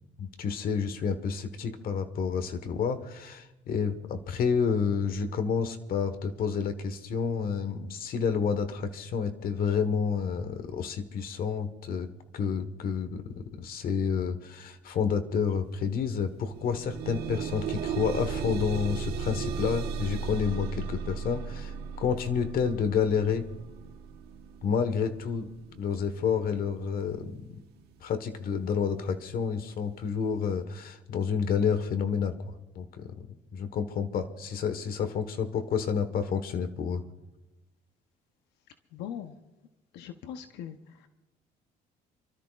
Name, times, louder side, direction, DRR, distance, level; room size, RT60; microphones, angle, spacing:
voice 1, 0.2-12.1 12.3-23.5 24.6-25.5 25.7-27.5 28.0-33.3 33.5-37.0, left 6 dB, 60° left, 9 dB, 1.4 m, -29 dB
sound 1, 15.7-15.8 16.2-27.2 28.0-28.1 28.6-28.7, right 6 dB, 70° right, 1.3 m, -36 dB
voice 2, 38.9-39.4 39.9-40.8, left 9 dB, 90° left, 7 dB, 0.9 m, -40 dB
29.5 x 13.0 x 2.5 m, 1.0 s
cardioid pair, 110°, 17 cm